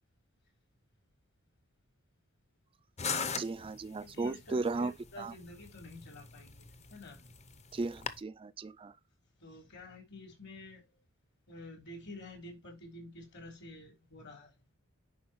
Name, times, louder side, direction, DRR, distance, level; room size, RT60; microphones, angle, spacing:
sound 1, 3.0-8.2, left 5 dB, 30° left, 0.7 m, -41 dB
voice 1, 3.4-4.9 5.2-5.3 7.7-8.9, right 3 dB, 25° right, 0.3 m, -35 dB
voice 2, 4.0-7.2 9.4-11.0 11.5-14.5, left 1 dB, 55° left, 3.3 m, -49 dB
10.5 x 4.7 x 3.1 m
head